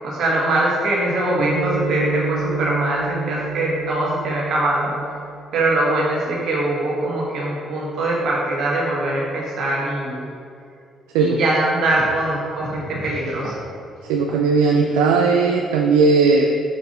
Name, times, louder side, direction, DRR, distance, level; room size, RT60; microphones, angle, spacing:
voice 1, 0.0-4.9 5.5-10.2 11.2-13.6, right 2 dB, 65° right, -3 dB, 1.4 m, -22 dB
sound 1, 1.4-5.7, right 3 dB, 50° right, 0.8 m, -28 dB
voice 2, 14.1-16.6, right 4 dB, 85° right, 2 dB, 0.3 m, -17 dB
5.5 x 4.8 x 3.9 m, 2.4 s
hypercardioid pair, 55°, 0 cm